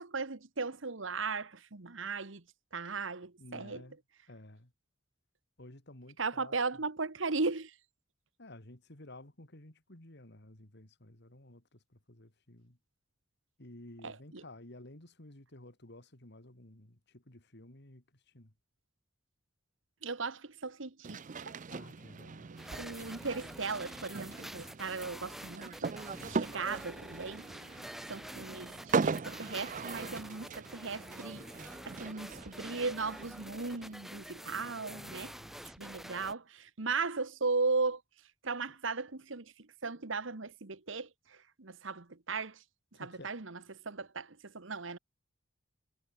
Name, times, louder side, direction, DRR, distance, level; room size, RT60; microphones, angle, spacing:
voice 1, 0.0-2.4 2.7-3.8 6.2-7.7 14.0-14.4 20.0-21.5 22.8-25.9 26.2-27.4 28.1-31.5 31.8-35.3 35.6-38.0 38.4-42.6 43.0-43.6 43.8-45.0, right 4 dB, 70° right, 1.5 m, -37 dB
voice 2, 3.4-4.0 4.3-4.7 5.6-6.8 8.4-12.8 13.6-18.5 21.7-22.5 26.2-26.4 34.9-35.7 42.9-43.3, left 1 dB, 60° left, 3.1 m, -53 dB
sound 1, 21.0-33.9, right 4 dB, 40° right, 0.5 m, -39 dB
sound 2, 22.6-36.3, equal, ahead, 1.4 m, -47 dB
head